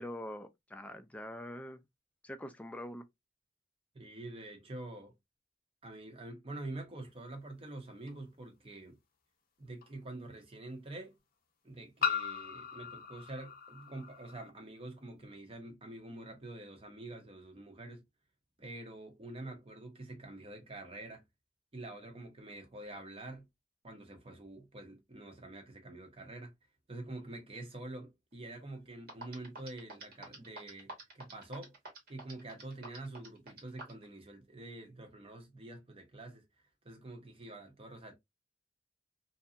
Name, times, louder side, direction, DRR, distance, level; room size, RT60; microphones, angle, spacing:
voice 1, 0.0-1.8 2.2-3.0, left 1 dB, 10° left, 0.4 m, -44 dB
voice 2, 3.9-5.1 5.8-9.0 9.6-11.2 11.6-18.0 18.6-21.2 21.7-23.5 23.8-26.5 26.9-31.8 32.1-38.2, right 2 dB, 30° right, 0.8 m, -46 dB
sound 1, 8.1-8.2 9.8-9.9 12.0-14.5, left 7 dB, 55° left, 0.6 m, -37 dB
sound 2, 28.7-28.8 29.1-34.0, right 2 dB, 55° right, 1.2 m, -47 dB
2.7 x 2.2 x 2.4 m
head